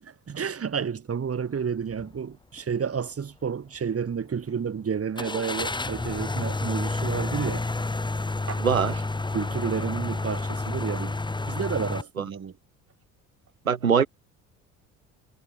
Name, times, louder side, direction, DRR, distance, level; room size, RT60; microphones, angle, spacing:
voice 1, 0.0-7.6 8.5-8.6 9.3-11.2 11.5-12.5, right 7 dB, 35° right, 7.0 m, -30 dB
sound 1, 1.9-2.1 2.6-2.7 5.2-12.0, left 2 dB, 10° left, 1.6 m, -30 dB
voice 2, 8.6-9.0 13.7-14.1, right 7 dB, 90° right, 2.0 m, -22 dB
figure-of-eight pair, 55°, 40 cm